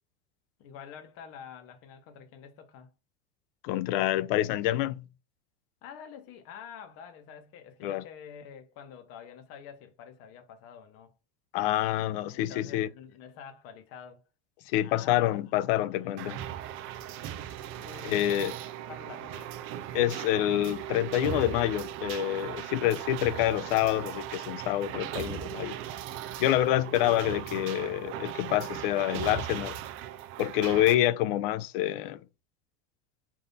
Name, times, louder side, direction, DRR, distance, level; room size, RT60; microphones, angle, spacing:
voice 1, 0.6-2.9 5.8-11.1 12.3-14.2 14.8-16.4 17.8-18.5 18.9-19.6, left 7 dB, 50° left, 0.9 m, -48 dB
voice 2, 3.6-5.0 7.8-8.0 11.5-12.9 14.7-16.4 18.0-18.6 19.9-25.7 26.4-29.8 30.4-32.2, left 13 dB, 65° left, 0.5 m, -27 dB
sound 1, 16.2-30.9, right 11 dB, 45° right, 0.5 m, -38 dB
3.5 x 2.7 x 3.9 m
supercardioid pair, 140°, 30 cm